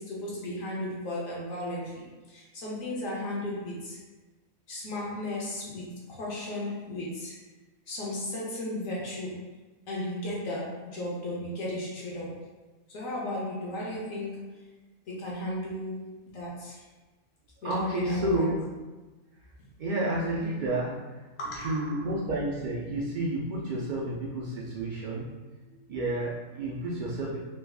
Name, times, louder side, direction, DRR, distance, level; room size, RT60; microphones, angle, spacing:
voice 1, 0.0-4.0 4.7-7.4 7.9-9.5 9.9-12.5 12.9-14.6 15.2-16.9 17.7-18.5 21.4-22.1, left 1 dB, 75° left, -5 dB, 1.2 m, -35 dB
voice 2, 17.6-18.6 19.8-21.0 21.6-25.3 25.7-27.4, right 1 dB, 80° right, -5 dB, 0.4 m, -30 dB
3.3 x 3.3 x 2.3 m, 1.2 s
omnidirectional pair, 1.4 m